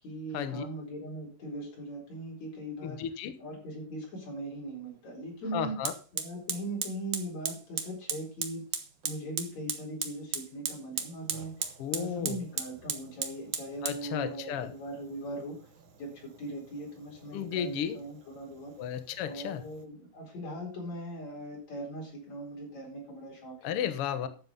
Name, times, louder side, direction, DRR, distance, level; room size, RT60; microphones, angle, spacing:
voice 1, 0.0-3.0 3.4-5.8 6.1-8.6 9.0-15.6 16.0-18.7 19.2-23.7 24.2-24.3, right 1 dB, 50° left, -1 dB, 5.4 m, -40 dB
voice 2, 2.8-3.3 5.5-5.9 11.8-12.4 13.8-14.7 17.3-18.0 18.8-19.6 23.6-24.3, left 9 dB, 80° left, 10 dB, 1.3 m, -33 dB
Fire, 4.8-4.9 5.8-19.8, right 7 dB, 60° right, 1.3 m, -39 dB
11.5 x 7.6 x 5.4 m, 0.38 s
omnidirectional pair, 4.1 m